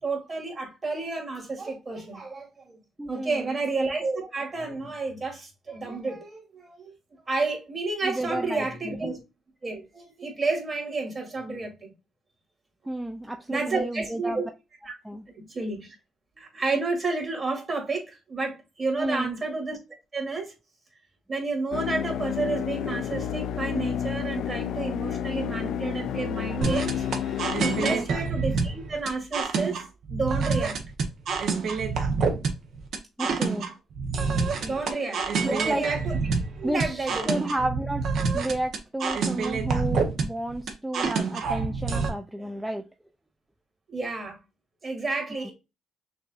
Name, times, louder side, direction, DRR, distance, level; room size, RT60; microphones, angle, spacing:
voice 1, 0.0-2.8 3.1-6.9 7.3-9.2 9.6-11.9 13.5-14.5 14.8-14.9 15.3-15.9 16.3-19.8 20.1-20.5 21.3-27.0 27.6-29.8 30.1-30.8 34.6-36.2 36.6-37.3 43.9-44.4 44.8-45.5, right 3 dB, 35° right, 2.2 m, -30 dB
voice 2, 3.0-3.5 8.0-9.0 12.9-14.4 15.0-15.3 19.0-19.3 27.8-28.1 33.2-33.7 35.4-35.9 36.6-42.9 45.4-45.5, right 1 dB, 5° right, 0.4 m, -32 dB
sound 1, 21.7-28.0, left 9 dB, 75° left, 0.3 m, -30 dB
sound 2, 26.6-42.1, right 4 dB, 65° right, 0.9 m, -27 dB
6.0 x 2.6 x 2.4 m
cardioid pair, 90°, 0 cm